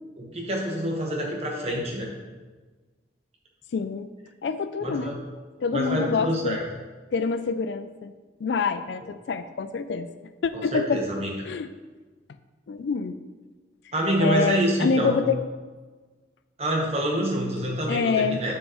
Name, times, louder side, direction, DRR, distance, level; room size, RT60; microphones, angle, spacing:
voice 1, 0.2-2.1 4.8-5.2 5.7-6.6 10.5-11.3 13.9-15.2 16.6-18.5, right 1 dB, 35° right, -1 dB, 1.2 m, -26 dB
voice 2, 3.7-4.1 4.4-5.1 5.6-6.6 7.1-8.1 8.4-10.1 10.4-11.0 11.5-11.7 12.7-13.2 14.2-15.4 17.9-18.4, left 5 dB, 65° left, 11 dB, 0.3 m, -26 dB
7.3 x 6.4 x 3.1 m, 1.3 s
head